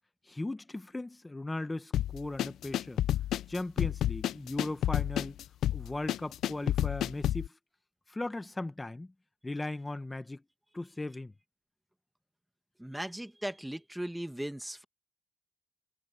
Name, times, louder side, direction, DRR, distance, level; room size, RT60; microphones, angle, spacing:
voice 1, 0.3-3.0 3.5-5.4 5.7-7.6 8.1-9.1 9.4-10.4 10.7-11.3, left 2 dB, 15° left, 1.1 m, -37 dB
sound 1, 1.9-7.5, left 12 dB, 75° left, 0.3 m, -30 dB
voice 2, 12.8-14.8, right 1 dB, 5° right, 1.5 m, -38 dB
cardioid pair, 120°, 0 cm